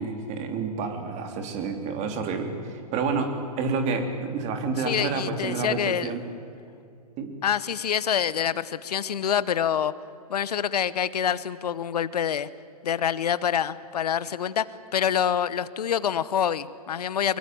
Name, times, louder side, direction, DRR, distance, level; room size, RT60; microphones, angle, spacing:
voice 1, 0.0-6.2 7.2-7.4, right 4 dB, 35° right, 6 dB, 3.4 m, -29 dB
voice 2, 4.8-6.1 7.4-9.9 10.3-12.5 12.8-14.7 14.9-17.4, left 8 dB, 80° left, 17 dB, 1.0 m, -26 dB
24.0 x 22.0 x 7.7 m, 2.6 s
hypercardioid pair, 125°, 20 cm